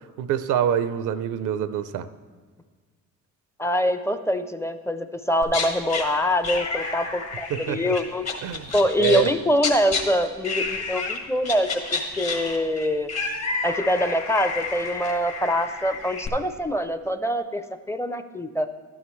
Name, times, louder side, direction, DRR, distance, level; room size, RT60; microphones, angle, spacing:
voice 1, 0.2-2.1 7.5-8.0 8.4-8.7 9.0-9.3, right 9 dB, 90° right, 12 dB, 0.6 m, -25 dB
voice 2, 3.6-8.2 8.7-13.1 13.6-18.7, equal, 10° left, 10 dB, 0.5 m, -24 dB
sound 1, 5.4-6.0 6.4-9.3 9.6-10.0 10.4-11.2 11.4-16.3, left 4 dB, 55° left, 1.7 m, -30 dB
12.0 x 9.4 x 3.1 m, 1.5 s
cardioid pair, 90°, 30 cm